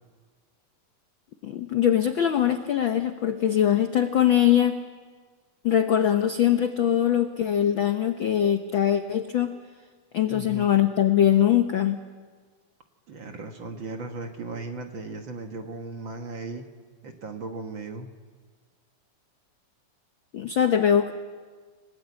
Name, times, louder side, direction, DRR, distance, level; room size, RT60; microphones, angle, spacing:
voice 1, 1.4-4.8 5.6-9.5 10.1-12.0 20.3-21.1, left 10 dB, 80° left, 7 dB, 1.0 m, -22 dB
voice 2, 10.3-10.7 13.1-16.7 17.0-18.1, right 3 dB, 50° right, 4 dB, 1.7 m, -37 dB
29.5 x 20.0 x 8.3 m, 1.5 s
omnidirectional pair, 3.6 m